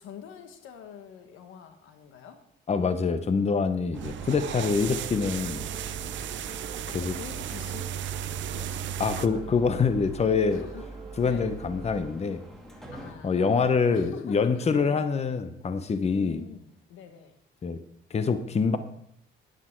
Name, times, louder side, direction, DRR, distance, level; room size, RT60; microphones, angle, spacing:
voice 1, 0.0-2.4 6.9-7.9 8.5-8.7 9.3-9.5 10.5-10.8 11.2-11.5 12.9-15.1 16.1-17.4, left 8 dB, 90° left, 8 dB, 1.3 m, -45 dB
voice 2, 2.7-5.6 6.9-7.1 9.0-10.6 11.2-12.4 13.2-16.4 17.6-17.8 18.1-18.8, left 5 dB, 35° left, 11 dB, 0.9 m, -25 dB
sound 1, 3.9-13.1, equal, ahead, 2.2 m, -48 dB
sound 2, 3.9-9.3, right 10 dB, 70° right, 0.6 m, -35 dB
sound 3, 4.7-12.1, right 4 dB, 25° right, 0.7 m, -43 dB
10.0 x 9.9 x 4.5 m, 0.71 s
cardioid pair, 90°, 20 cm